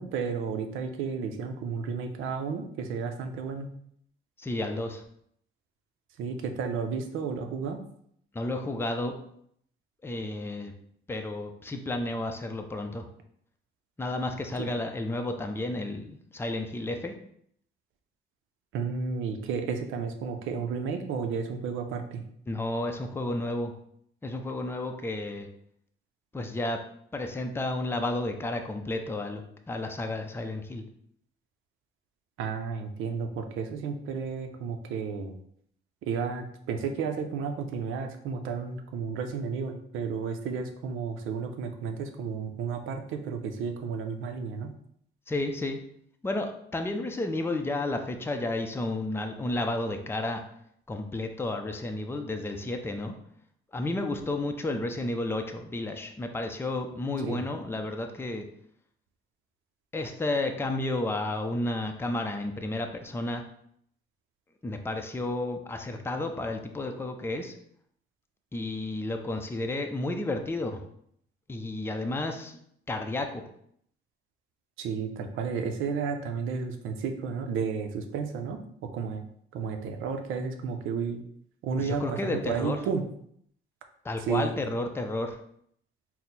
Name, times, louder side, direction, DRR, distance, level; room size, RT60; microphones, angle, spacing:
voice 1, 0.0-3.7 6.2-7.8 14.6-14.7 18.7-22.2 32.4-35.4 36.0-44.7 57.2-57.4 74.8-79.2 79.5-81.2 81.6-83.0 84.3-84.5, right 5 dB, 90° right, 6 dB, 0.5 m, -32 dB
voice 2, 4.4-5.0 8.3-9.1 10.0-10.7 11.1-13.0 14.0-17.1 22.5-23.7 24.2-25.5 26.3-26.8 27.1-29.4 29.7-30.8 45.3-45.8 46.2-50.4 50.9-53.1 53.7-58.5 59.9-63.4 64.6-67.5 68.5-70.8 71.5-72.6 72.9-73.4 81.8-82.8 84.0-85.4, left 2 dB, 10° left, 5 dB, 0.5 m, -32 dB
4.3 x 2.1 x 3.9 m, 0.68 s
cardioid pair, 90°, 20 cm